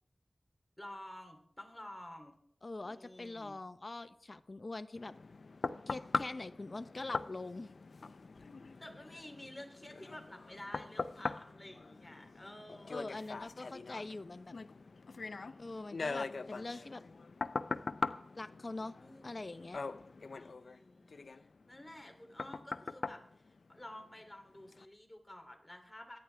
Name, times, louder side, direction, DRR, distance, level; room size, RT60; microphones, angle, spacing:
voice 1, 0.8-2.3 2.8-3.6 8.8-13.3 19.0-19.4 20.3-26.2, left 1 dB, 20° left, 4 dB, 3.1 m, -51 dB
voice 2, 2.6-5.1 5.9-7.7 12.7-14.5 15.6-17.0 18.3-18.9 19.2-19.8, left 2 dB, 55° left, 11 dB, 0.8 m, -43 dB
sound 1, 4.9-24.2 24.7-24.8, left 4 dB, 80° left, 0.5 m, -42 dB
25.0 x 9.8 x 3.4 m, 0.68 s
cardioid pair, 45°, 0 cm